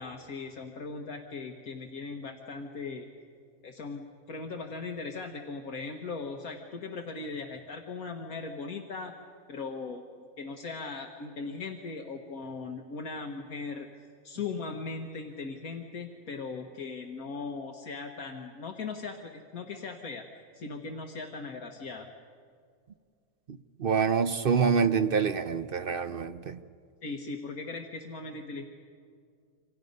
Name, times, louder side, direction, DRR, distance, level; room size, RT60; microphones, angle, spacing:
voice 1, 0.0-3.1 3.6-9.1 9.5-13.9 14.2-20.3 20.5-22.1 27.0-28.6, left 4 dB, 70° left, 2 dB, 1.7 m, -39 dB
voice 2, 23.5-26.6, right 6 dB, 50° right, 10 dB, 0.7 m, -26 dB
28.0 x 26.0 x 5.4 m, 2.2 s
omnidirectional pair, 1.6 m